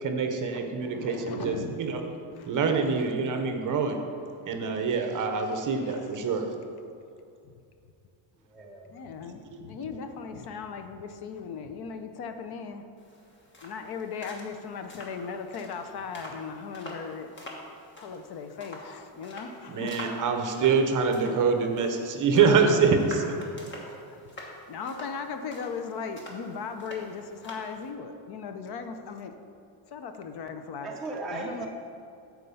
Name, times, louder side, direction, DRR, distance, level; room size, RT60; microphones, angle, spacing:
voice 1, 0.0-2.0 2.4-4.0 4.4-6.5 9.5-9.6 19.7-23.2, right 5 dB, 40° right, 5 dB, 0.8 m, -25 dB
voice 2, 0.5-1.8 2.4-2.6 4.4-4.9 5.8-6.2 7.4-7.5 8.9-12.9 13.6-17.3 18.0-19.9 21.0-21.3 24.1-24.2 24.7-29.3 29.9-30.9 31.3-31.7, left 5 dB, 50° left, 7 dB, 0.7 m, -38 dB
voice 3, 8.4-8.9 22.3-23.0 23.4-24.0 30.8-31.7, right 2 dB, ahead, -3 dB, 0.6 m, -38 dB
sound 1, 13.0-27.9, left 1 dB, 25° left, 1.4 m, -46 dB
9.3 x 4.6 x 6.9 m, 2.5 s
cardioid pair, 165°, 49 cm